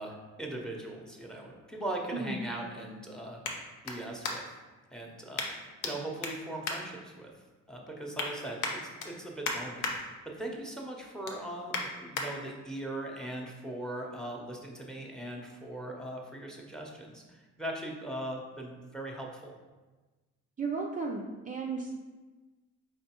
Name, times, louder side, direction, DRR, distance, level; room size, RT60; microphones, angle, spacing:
voice 1, 0.0-3.4 3.8-4.4 4.9-7.3 7.7-19.5, right 1 dB, ahead, 0 dB, 0.8 m, -40 dB
sound 1, 1.0-4.7 5.3-5.9 6.2-7.5 7.9-8.3 8.6-9.9 10.4-10.6 11.0-12.3 12.8-12.9, left 3 dB, 85° left, 0.7 m, -37 dB
voice 2, 20.6-22.0, right 4 dB, 25° right, -1 dB, 0.4 m, -34 dB
4.3 x 4.0 x 2.9 m, 1.2 s
cardioid pair, 90°, 30 cm